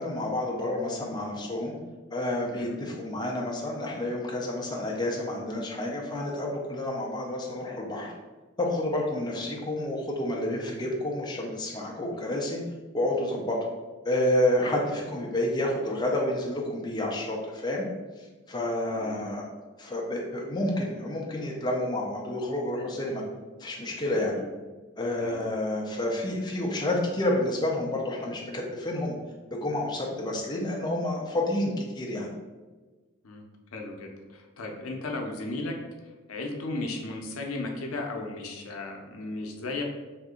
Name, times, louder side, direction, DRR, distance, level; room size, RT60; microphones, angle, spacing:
voice 1, 0.0-1.7 2.1-8.1 8.6-12.6 12.9-13.6 14.0-17.8 18.2-19.5 19.8-23.2 23.6-24.4 25.0-29.1 29.5-32.3, left 1 dB, 20° left, -2 dB, 0.4 m, -29 dB
voice 2, 33.7-35.7 36.3-39.8, left 2 dB, 80° left, 2 dB, 0.5 m, -35 dB
2.7 x 2.5 x 3.6 m, 1.3 s
head